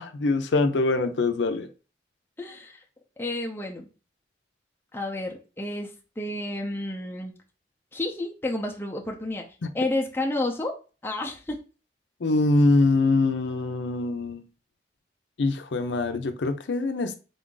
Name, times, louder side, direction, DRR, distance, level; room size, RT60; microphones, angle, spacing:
voice 1, 0.0-1.7 9.6-9.7 12.2-14.4 15.4-17.2, left 2 dB, 90° left, 0.5 m, -24 dB
voice 2, 2.4-2.7 3.2-3.9 4.9-5.9 6.2-7.3 7.9-9.5 9.7-10.8 11.0-11.6, left 2 dB, 15° left, 0.5 m, -30 dB
3.9 x 2.6 x 3.7 m
head